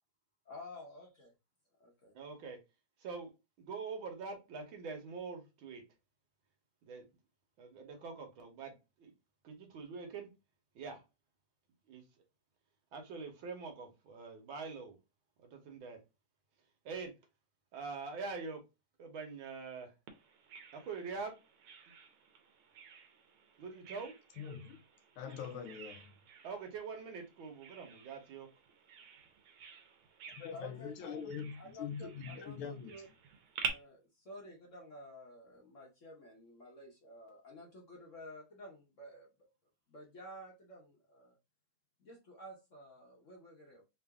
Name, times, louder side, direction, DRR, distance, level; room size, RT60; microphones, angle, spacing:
voice 1, 0.5-1.3 1.8-2.1 30.5-31.3 31.6-33.1 33.6-39.3 39.9-41.4 42.0-43.8, left 1 dB, 50° left, 0.9 m, -52 dB
voice 2, 2.2-2.6 3.0-3.3 3.6-5.8 6.9-7.1 7.6-9.1 9.4-10.3 10.8-11.0 11.9-12.0 12.9-15.0 15.4-16.0 16.9-17.1 17.7-18.6 19.0-19.9 20.7-21.3 23.6-24.1 26.4-28.5, right 4 dB, 70° right, 1.7 m, -44 dB
Bird vocalization bird call bird song, 20.1-33.7, right 7 dB, 85° right, 1.7 m, -49 dB
voice 3, 24.4-24.8 25.2-26.1 30.3-33.0, left 7 dB, 85° left, 1.5 m, -43 dB
3.8 x 2.5 x 3.4 m
omnidirectional pair, 2.3 m